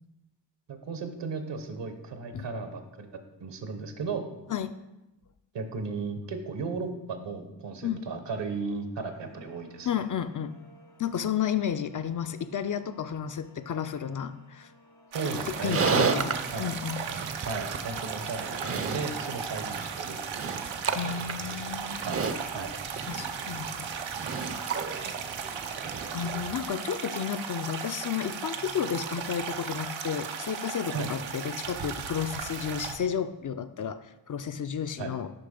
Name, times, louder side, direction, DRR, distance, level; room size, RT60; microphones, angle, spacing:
voice 1, 0.7-3.1 3.4-4.3 5.5-10.0 15.1-16.2 16.5-16.7 17.5-20.5 22.1-22.2 22.5-22.7 30.9-31.1 35.0-35.1, right 4 dB, 70° right, 7 dB, 1.0 m, -35 dB
sound 1, 9.1-21.0, left 1 dB, 75° left, 1.8 m, -58 dB
voice 2, 9.9-10.5 11.0-14.7 15.6-16.3 16.6-17.0 20.9-22.0 23.1-23.9 26.1-35.3, left 8 dB, 45° left, 10 dB, 0.4 m, -32 dB
sound 2, 15.1-33.0, right 6 dB, 90° right, 0.6 m, -36 dB
Livestock farm animals working animals, 15.4-26.6, right 5 dB, 30° right, 0.5 m, -33 dB
6.7 x 5.3 x 3.8 m, 0.94 s
cardioid pair, 50°, 45 cm